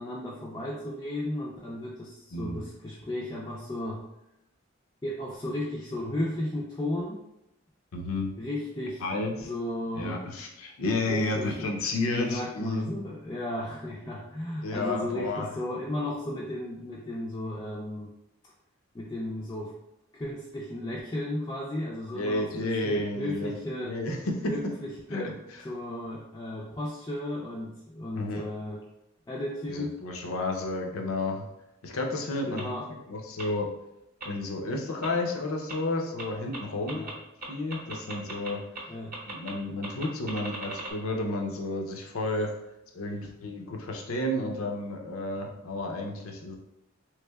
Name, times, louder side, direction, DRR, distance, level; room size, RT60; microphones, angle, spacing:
voice 1, 0.0-4.0 5.0-7.2 8.4-9.0 9.4-10.2 11.0-11.7 12.1-18.1 18.9-19.7 20.1-24.0 24.5-25.3 25.6-28.8 29.3-30.0 32.5-32.9 36.9-37.1 38.9-39.2, left 1 dB, 15° left, -6 dB, 0.3 m, -34 dB
voice 2, 7.9-8.3 9.0-9.5 10.0-12.9 14.6-15.5 22.1-23.5 23.8-24.2 25.1-25.3 28.2-28.5 29.7-31.4 31.8-32.7 33.1-33.7 34.2-37.1 37.5-38.6 39.2-42.5 42.9-46.6, left 2 dB, 80° left, 1 dB, 0.6 m, -31 dB
sound 1, 32.6-32.7 33.4-33.5 34.2-34.3 35.0-35.1 35.7-35.8 36.2-36.3 36.5-36.6 36.9-37.1 37.4-38.5 38.7-38.8 39.1-39.5 39.8-40.9, right 2 dB, 40° right, 0.7 m, -37 dB
3.5 x 3.2 x 2.2 m, 0.86 s
head